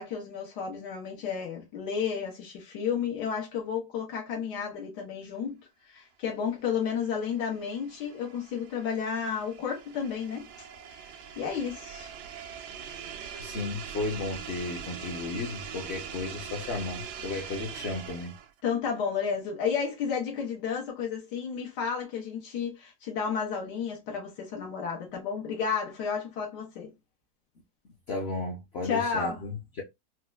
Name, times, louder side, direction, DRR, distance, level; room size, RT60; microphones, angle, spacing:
voice 1, 0.0-5.6 5.9-10.5 11.0-12.1 18.6-26.9 28.8-29.4, left 6 dB, 90° left, 1.5 m, -32 dB
sound 1, 6.7-18.6, right 8 dB, 80° right, 1.1 m, -42 dB
voice 2, 13.4-18.3 28.1-29.8, left 3 dB, 60° left, 0.6 m, -34 dB
4.3 x 2.1 x 2.2 m
omnidirectional pair, 1.8 m